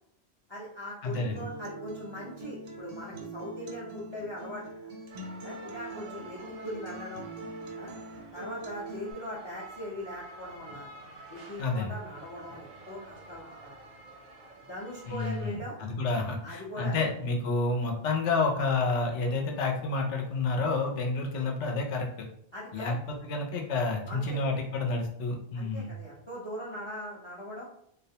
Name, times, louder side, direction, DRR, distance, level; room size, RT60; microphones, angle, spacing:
voice 1, 0.5-4.6 5.4-7.3 7.8-7.9 8.3-10.9 11.3-13.8 14.7-15.8 16.4-17.0 22.5-23.0 24.1-24.6 25.5-27.6, left 1 dB, 35° left, -5 dB, 0.5 m, -40 dB
voice 2, 1.0-1.4 11.6-11.9 15.1-22.3 22.7-25.9, left 3 dB, 80° left, 1 dB, 0.9 m, -29 dB
Acoustic guitar, 1.1-9.1, right 2 dB, 85° right, 0.9 m, -43 dB
sound 1, 5.1-15.6, right 3 dB, 50° right, 0.5 m, -49 dB
2.3 x 2.1 x 2.7 m, 0.71 s
omnidirectional pair, 1.2 m